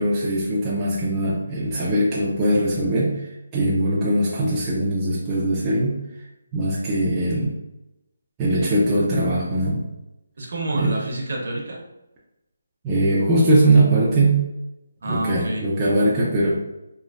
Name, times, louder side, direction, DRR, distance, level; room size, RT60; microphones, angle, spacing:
voice 1, 0.0-6.0 6.5-7.5 8.4-9.9 10.7-11.0 12.8-14.5 15.0-16.5, right 1 dB, 15° right, -7 dB, 0.4 m, -21 dB
voice 2, 10.4-11.8 15.0-15.6, right 1 dB, 55° right, -1 dB, 0.7 m, -28 dB
3.1 x 2.0 x 2.3 m, 0.92 s
hypercardioid pair, 170°, 0 cm